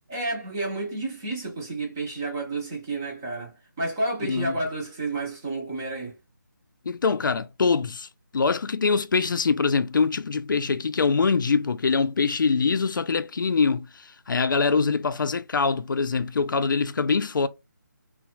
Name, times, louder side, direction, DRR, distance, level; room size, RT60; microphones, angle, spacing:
voice 1, 0.1-6.2, right 2 dB, 10° right, 0.4 m, -30 dB
voice 2, 6.9-8.1 8.3-17.5, left 4 dB, 75° left, 0.4 m, -24 dB
2.9 x 2.1 x 2.9 m
figure-of-eight pair, 170°, 11 cm